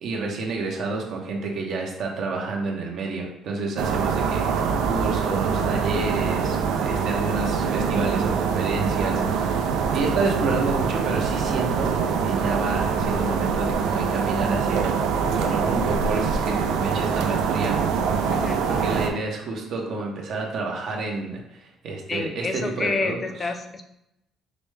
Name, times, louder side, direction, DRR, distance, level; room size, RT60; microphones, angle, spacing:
voice 1, 0.0-11.9 12.2-15.1 15.3-18.1 18.7-23.5, right 3 dB, 65° right, 0 dB, 0.9 m, -30 dB
sound 1, 3.8-19.1, right 6 dB, 85° right, 0.4 m, -24 dB
voice 2, 18.3-18.6 22.1-23.8, left 3 dB, 30° left, 5 dB, 0.5 m, -28 dB
5.0 x 2.1 x 3.2 m, 0.82 s
cardioid pair, 95°, 0 cm